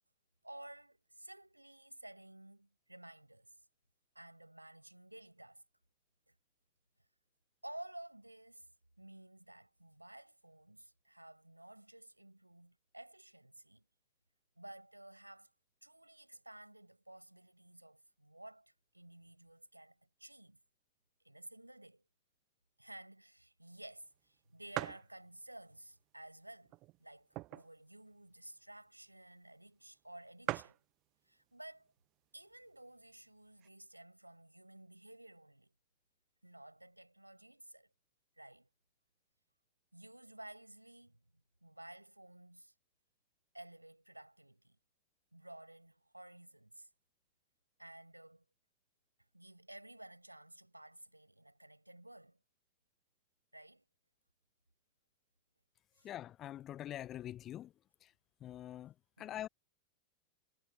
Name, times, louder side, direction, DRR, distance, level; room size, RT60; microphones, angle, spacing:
voice 1, 0.4-3.6 4.1-5.6 6.3-6.4 7.6-8.7 9.0-13.9 14.6-15.5 15.8-20.6 21.2-22.0 22.8-26.7 27.0-30.8 31.2-31.9 32.3-35.7 36.4-37.9 38.4-38.7 39.9-41.2 41.6-42.7 43.5-44.8 45.3-46.9 47.8-48.4 49.3-52.4 53.5-53.8 56.0-56.1 59.2-59.4, right 1 dB, 85° right, 7.2 m, -54 dB
sound 1, 23.8-23.9 24.2-24.3 24.7-25.1 25.7-25.8 26.6-27.8 28.2-28.3 28.4-28.7 29.5-29.6 29.8-29.9 30.1-30.2 30.4-30.9 31.7-32.1 32.6-32.7 32.9-33.7, right 20 dB, 40° right, 0.4 m, -41 dB
voice 2, 56.0-57.7 58.0-58.1 58.4-59.5, left 12 dB, 30° left, 0.8 m, -45 dB
figure-of-eight pair, 90°, 0 cm